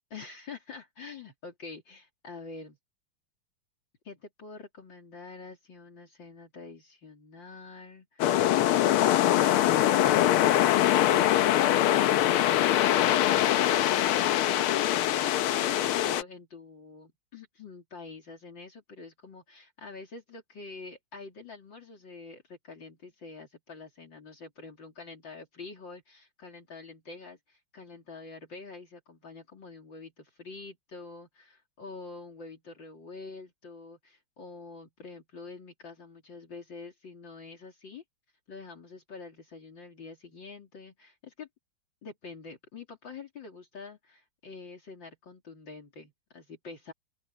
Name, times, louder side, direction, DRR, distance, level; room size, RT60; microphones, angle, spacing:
voice 1, 0.1-2.8 4.1-8.7 9.0-38.0 38.5-41.5 42.0-46.9, left 4 dB, 60° left, 3.6 m, -46 dB
sound 1, 8.2-16.2, left 12 dB, 80° left, 1.7 m, -23 dB
open air
omnidirectional pair, 2.4 m